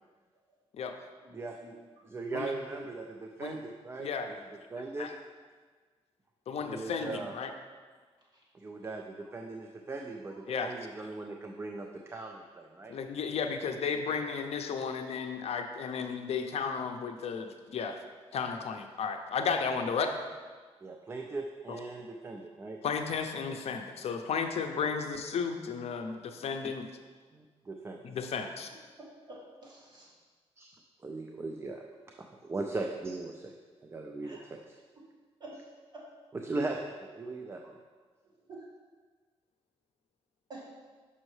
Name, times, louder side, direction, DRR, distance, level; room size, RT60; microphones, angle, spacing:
voice 1, 1.2-1.7 29.0-30.1 34.2-34.4 35.0-35.1 35.4-35.5 35.9-36.0 38.5-38.6 40.5-40.6, right 2 dB, 40° right, -6 dB, 1.7 m, -48 dB
voice 2, 2.0-5.1 6.6-7.3 8.5-12.9 20.8-22.8 27.3-28.0 30.6-30.7 31.0-31.8 32.2-33.5 33.8-34.8 36.3-37.8, right 3 dB, 20° right, 3 dB, 0.4 m, -39 dB
voice 3, 6.5-7.5 10.5-10.7 12.9-18.0 18.3-20.1 22.8-26.9 28.0-28.7, left 6 dB, 70° left, 6 dB, 0.5 m, -33 dB
6.1 x 5.5 x 3.2 m, 1.5 s
wide cardioid pair, 140°, 11 cm